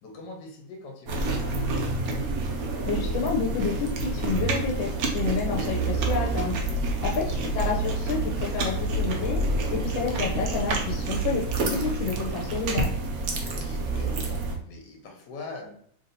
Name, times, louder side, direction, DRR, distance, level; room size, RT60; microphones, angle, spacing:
voice 1, 0.0-1.9 7.2-7.6 10.0-10.3 13.5-15.7, left 3 dB, 65° left, 1 dB, 1.6 m, -43 dB
sound 1, 1.1-14.6, right 3 dB, 60° right, 1.0 m, -28 dB
voice 2, 2.8-6.6 7.0-7.3 7.5-9.4 9.7-12.9, left 5 dB, 85° left, -1 dB, 1.5 m, -29 dB
3.6 x 2.7 x 4.0 m, 0.63 s
omnidirectional pair, 2.1 m